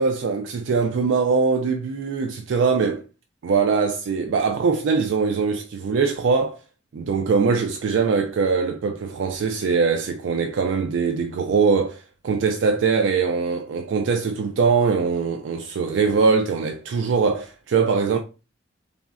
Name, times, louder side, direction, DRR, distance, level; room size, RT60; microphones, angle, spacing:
voice 1, 0.0-3.0 3.4-6.6 6.9-18.2, right 5 dB, 90° right, 0.3 m, -22 dB
3.5 x 2.0 x 2.4 m
head